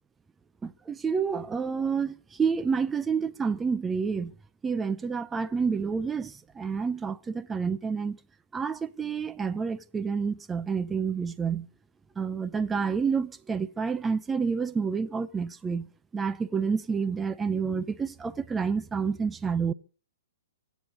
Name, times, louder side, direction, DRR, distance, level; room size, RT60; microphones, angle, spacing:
voice 1, 0.6-4.4 4.6-8.2 8.5-11.7 12.2-19.7, right 5 dB, 10° right, 0.6 m, -29 dB
24.5 x 8.4 x 5.3 m
figure-of-eight pair, 115°, 0 cm